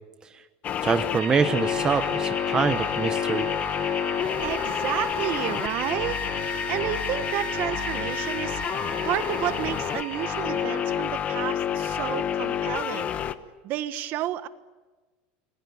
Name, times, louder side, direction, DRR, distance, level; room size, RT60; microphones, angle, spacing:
sound 1, 0.6-13.3, left 9 dB, 30° left, 1.1 m, -28 dB
voice 1, 0.8-3.5, right 5 dB, 15° right, 9 dB, 1.0 m, -25 dB
sound 2, 1.1-11.1, right 17 dB, 75° right, 1.2 m, -39 dB
voice 2, 4.4-8.6 9.0-13.1 13.6-14.5, right 12 dB, 45° right, 12 dB, 1.4 m, -31 dB
28.0 x 21.5 x 9.5 m, 1.3 s
supercardioid pair, 160°, 5 cm